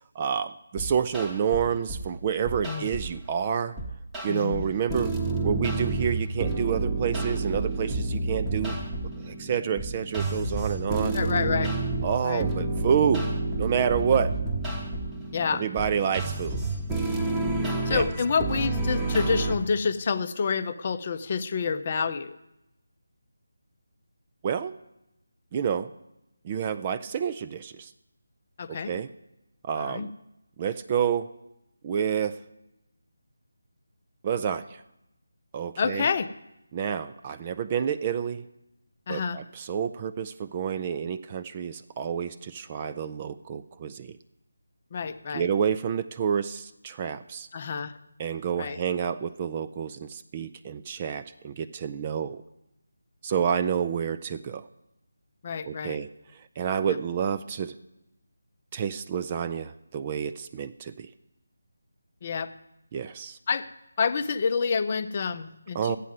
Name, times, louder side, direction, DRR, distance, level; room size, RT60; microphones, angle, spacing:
voice 1, 0.2-3.8 4.2-5.1 5.4-8.8 9.3-11.2 12.0-13.3 13.6-14.4 15.6-16.6 17.9-18.0 24.4-24.8 25.5-25.9 26.4-27.9 28.7-29.1 29.6-30.1 30.6-31.3 31.8-32.4 34.2-34.6 35.5-36.1 36.7-38.4 39.1-44.1 45.3-47.5 48.2-52.4 53.2-54.6 55.7-56.1 56.6-57.7 58.7-61.1 62.9-63.4 65.8-66.0, right 7 dB, 25° right, 13 dB, 0.4 m, -28 dB
sound 1, 0.8-2.1 2.5-3.2 3.8-19.5, right 2 dB, 5° right, 1.0 m, -30 dB
voice 2, 4.3-4.6 11.1-11.7 12.2-12.5 15.3-15.7 17.9-22.4 28.6-28.9 29.8-30.1 35.8-36.3 39.1-39.4 44.9-45.5 47.5-48.0 48.6-48.8 55.4-56.0 56.8-57.0 62.2-62.5 63.5-63.7 64.0-66.0, left 5 dB, 30° left, 11 dB, 0.6 m, -28 dB
12.0 x 8.3 x 7.6 m, 0.88 s
figure-of-eight pair, 155°, 0 cm